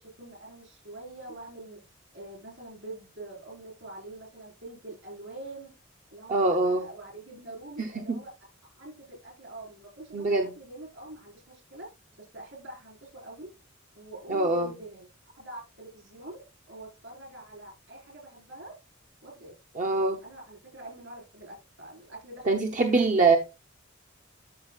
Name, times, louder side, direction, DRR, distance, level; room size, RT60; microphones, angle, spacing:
voice 1, 0.0-1.8 2.1-5.7 6.1-8.3 8.6-11.9 12.2-13.5 13.9-16.4 16.7-18.7 19.2-19.5 20.2-23.1, right 1 dB, 65° right, 4.4 m, -45 dB
voice 2, 6.3-6.8 7.8-8.2 10.1-10.5 14.3-14.7 19.8-20.2 22.5-23.4, right 3 dB, 40° right, 0.8 m, -24 dB
12.5 x 6.4 x 2.3 m
head